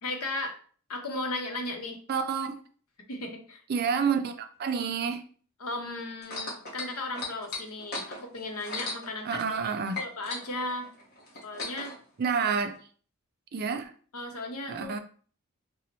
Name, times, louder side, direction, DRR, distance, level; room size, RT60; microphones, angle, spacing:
voice 1, 0.0-0.6 0.9-2.0 3.1-3.6 5.6-9.7 10.0-10.9 11.4-11.9 14.1-15.0, left 2 dB, 85° left, 0.7 m, -36 dB
voice 2, 2.1-2.6 3.7-5.2 9.3-10.0 12.2-12.8 13.5-13.9 14.7-15.0, right 6 dB, 45° right, 0.3 m, -29 dB
sound 1, 6.2-9.7 9.9-12.0 12.7-12.8, left 3 dB, 45° left, 0.9 m, -37 dB
3.9 x 2.1 x 2.8 m
head